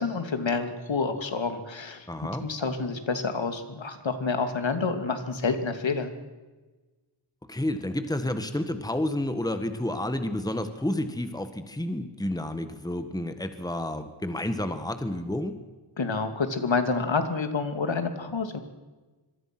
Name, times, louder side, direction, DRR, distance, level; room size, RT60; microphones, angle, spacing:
voice 1, 0.0-2.1 2.4-6.1 16.0-18.6, left 4 dB, 70° left, 8 dB, 2.6 m, -28 dB
voice 2, 2.1-2.5 7.5-15.6, left 1 dB, 10° left, 8 dB, 1.7 m, -30 dB
25.5 x 23.0 x 6.2 m, 1.3 s
wide cardioid pair, 95°, 46 cm